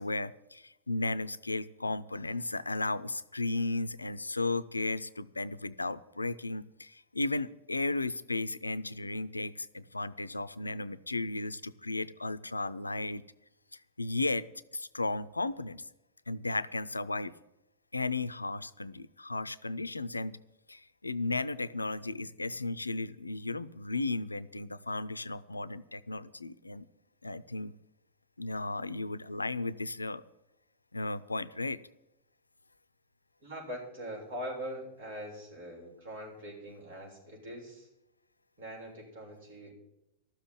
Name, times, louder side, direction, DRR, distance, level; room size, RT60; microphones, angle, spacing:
voice 1, 0.0-13.2 14.0-14.5 14.7-15.8 16.3-17.3 17.9-20.4 20.7-26.9 27.2-27.7 28.4-30.2 30.9-31.8, left 2 dB, 80° left, 17 dB, 0.5 m, -35 dB
voice 2, 33.4-37.9 38.6-39.7, equal, 55° right, -1 dB, 6.8 m, -42 dB
13.5 x 7.4 x 9.9 m, 0.88 s
figure-of-eight pair, 90°, 0 cm